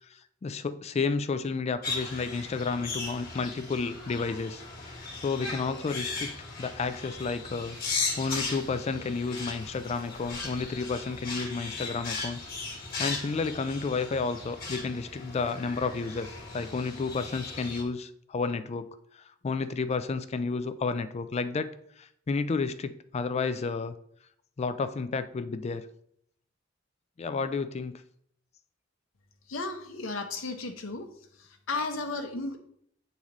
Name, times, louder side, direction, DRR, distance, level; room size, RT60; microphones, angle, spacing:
voice 1, 0.1-4.9 5.2-6.3 6.6-12.4 13.0-18.9 19.2-23.9 24.6-25.9 27.2-28.0, left 4 dB, 35° left, 12 dB, 0.3 m, -31 dB
sound 1, 1.8-17.8, left 3 dB, 50° left, 1.4 m, -37 dB
voice 2, 29.5-31.1 31.4-32.6, left 3 dB, 80° left, 6 dB, 0.8 m, -34 dB
8.5 x 4.0 x 3.0 m, 0.69 s
head